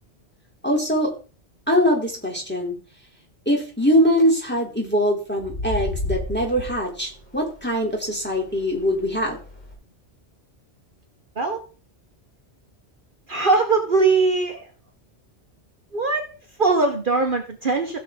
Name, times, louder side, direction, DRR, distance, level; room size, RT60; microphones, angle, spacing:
voice 1, 0.6-1.1 1.7-2.8 3.4-9.4, equal, 10° left, -1 dB, 3.3 m, -22 dB
sound 1, 3.9-4.2 5.3-9.7, left 1 dB, 40° left, 3.6 m, -34 dB
voice 2, 13.3-14.7 15.9-18.0, right 3 dB, 45° right, 4 dB, 1.3 m, -21 dB
15.5 x 7.0 x 3.7 m, 0.36 s
omnidirectional pair, 1.2 m